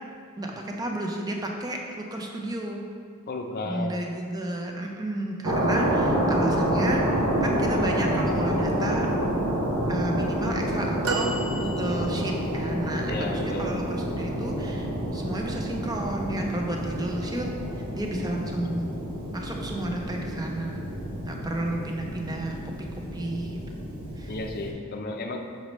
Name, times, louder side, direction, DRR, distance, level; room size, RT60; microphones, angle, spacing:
voice 1, 0.4-2.9 3.7-9.1 9.9-17.5 17.7-18.9 19.3-20.8 21.2-22.6 23.1-23.8 24.2-24.3, right 1 dB, 20° right, 1 dB, 0.6 m, -32 dB
voice 2, 3.3-4.0 13.1-13.8 24.3-25.4, left 2 dB, 45° left, 4 dB, 0.5 m, -33 dB
sound 1, 5.4-24.7, equal, 80° right, 1.2 m, -28 dB
sound 2, 11.0-12.5 13.2-13.3, right 4 dB, 60° right, 0.5 m, -32 dB
6.5 x 5.3 x 3.1 m, 2.3 s
head